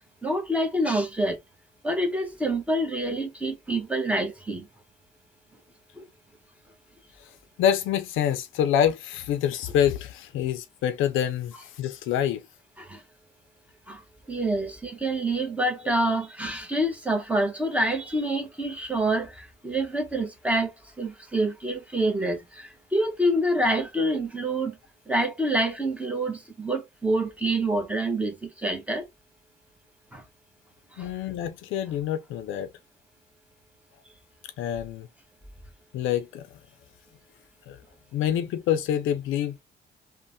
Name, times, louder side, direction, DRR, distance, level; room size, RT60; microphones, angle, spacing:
voice 1, 0.2-1.4 1.8-4.7 6.0-6.1 12.8-13.0 13.9-14.0 14.3-24.7 25.1-29.0 30.1-30.2 31.0-31.1, right 1 dB, 5° right, 1.0 m, -27 dB
voice 2, 7.6-12.5 31.0-32.7 34.6-35.1 35.9-36.6 37.7-37.8 38.1-39.6, left 10 dB, 85° left, 0.5 m, -26 dB
3.1 x 2.1 x 2.6 m
cardioid pair, 90°, 20 cm